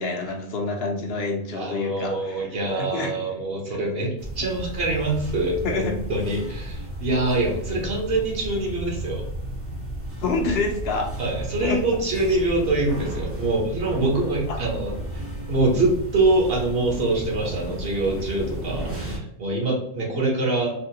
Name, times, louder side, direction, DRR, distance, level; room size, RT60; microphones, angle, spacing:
voice 1, 0.0-3.1 3.7-3.8 5.6-5.9 10.2-11.1 11.6-11.8 14.5-14.6, left 3 dB, 70° left, 3 dB, 0.8 m, -27 dB
voice 2, 1.6-9.2 11.2-20.7, right 2 dB, 60° right, -1 dB, 1.1 m, -25 dB
sound 1, 4.2-19.2, right 1 dB, 20° right, 0.4 m, -33 dB
3.4 x 2.2 x 2.8 m, 0.74 s
omnidirectional pair, 1.1 m